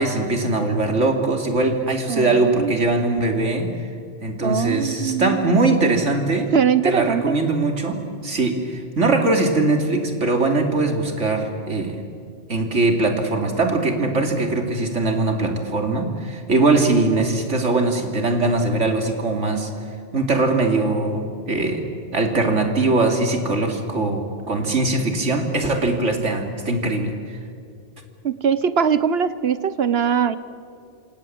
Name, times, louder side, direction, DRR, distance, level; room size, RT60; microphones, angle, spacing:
voice 1, 0.0-3.7 4.2-6.5 6.8-12.0 12.5-19.7 20.1-21.8 22.1-27.1, right 2 dB, 85° right, 4 dB, 3.2 m, -21 dB
voice 2, 2.1-2.7 4.4-5.6 6.5-7.4 28.2-30.4, right 7 dB, 60° right, 14 dB, 1.1 m, -21 dB
27.5 x 26.5 x 7.8 m, 2.4 s
omnidirectional pair, 1.2 m